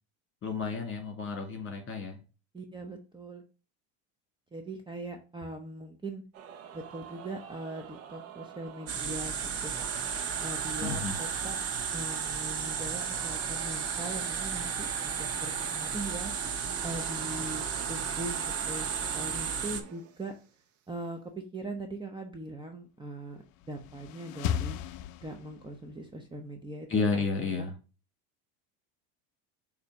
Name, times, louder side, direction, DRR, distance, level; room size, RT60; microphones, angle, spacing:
voice 1, 0.4-2.2 10.8-11.2 26.9-27.7, left 4 dB, 30° left, 4 dB, 2.2 m, -31 dB
voice 2, 2.5-3.4 4.5-6.2 6.7-9.4 9.6-9.7 10.4-11.6 11.9-16.3 16.8-18.9 19.1-20.3 20.9-24.7 25.2-27.5, right 2 dB, 10° right, 3 dB, 0.8 m, -41 dB
sound 1, 6.3-20.5, right 8 dB, 80° right, 1.2 m, -44 dB
sound 2, 8.9-19.8, right 6 dB, 40° right, 1.2 m, -34 dB
sound 3, 23.5-25.9, left 10 dB, 50° left, 0.5 m, -35 dB
6.7 x 2.9 x 4.9 m, 0.33 s
supercardioid pair, 110°, 38 cm